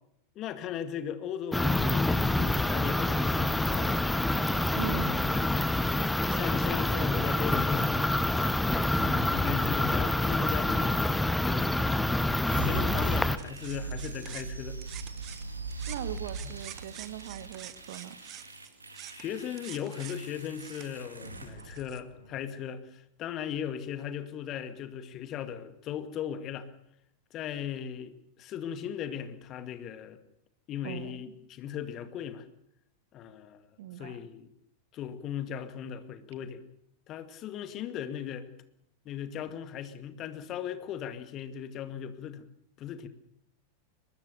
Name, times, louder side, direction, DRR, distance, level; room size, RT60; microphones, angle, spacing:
voice 1, 0.4-4.1 4.9-5.9 6.3-8.1 8.9-11.0 11.4-11.8 12.6-14.8 16.4-16.5 19.1-26.7 27.3-30.2 30.7-32.5 33.1-33.7 34.0-34.5 34.9-36.6 37.1-38.5 39.1-42.5 42.8-43.1, left 9 dB, 35° left, 10 dB, 2.2 m, -38 dB
sound 1, 1.5-13.4, left 2 dB, 5° left, 1.0 m, -27 dB
voice 2, 4.8-5.4 15.9-18.2 30.8-31.2 33.8-34.2, right 12 dB, 55° right, 14 dB, 1.3 m, -40 dB
sound 2, 12.5-22.4, right 3 dB, 80° right, 2.7 m, -41 dB
sound 3, 13.4-15.5 15.7-22.0, right 12 dB, 35° right, 1.4 m, -48 dB
23.0 x 21.0 x 7.0 m, 0.74 s
figure-of-eight pair, 90°, 0 cm